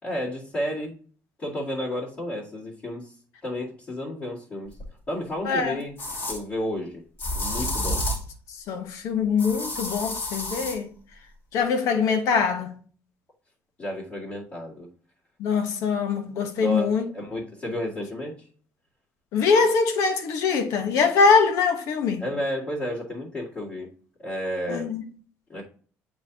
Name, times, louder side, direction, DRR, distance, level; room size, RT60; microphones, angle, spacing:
voice 1, 0.0-1.0 1.4-3.1 3.4-4.8 5.1-6.0 6.3-7.0 7.4-8.0 13.8-14.9 16.6-18.5 22.2-23.9 24.2-24.9 25.5-25.6, left 1 dB, 25° left, 2.1 m, -31 dB
sound 1, 4.8-4.9 6.0-6.4 7.2-8.3 9.4-10.8, left 1 dB, 50° left, 2.4 m, -30 dB
voice 2, 5.4-5.8 8.7-10.9 11.5-12.7 15.4-17.0 19.3-22.2 24.7-25.0, left 5 dB, 75° left, 1.2 m, -23 dB
8.4 x 4.3 x 2.9 m
cardioid pair, 135°, 5 cm